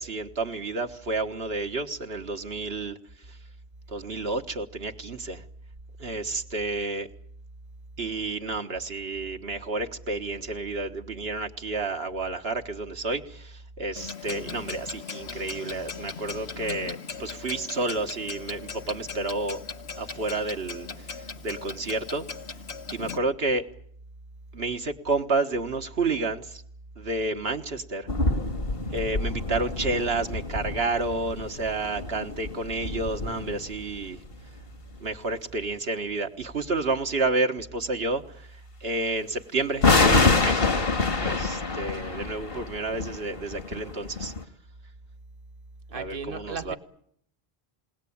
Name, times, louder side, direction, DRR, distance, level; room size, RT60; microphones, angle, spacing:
voice 1, 0.0-3.0 3.3-3.4 3.9-5.4 6.0-7.1 8.0-19.6 20.0-22.2 22.9-23.7 24.5-26.6 27.0-28.1 28.9-34.2 35.0-40.9 41.2-44.3 45.9-46.8, right 3 dB, 75° right, 1.8 m, -30 dB
Clock, 14.0-23.2, left 6 dB, 85° left, 1.7 m, -39 dB
sound 1, 28.1-34.3 39.8-44.4, left 3 dB, 65° left, 1.9 m, -26 dB
voice 2, 45.9-46.8, right 4 dB, 60° right, 1.7 m, -35 dB
30.0 x 18.0 x 8.7 m
omnidirectional pair, 1.0 m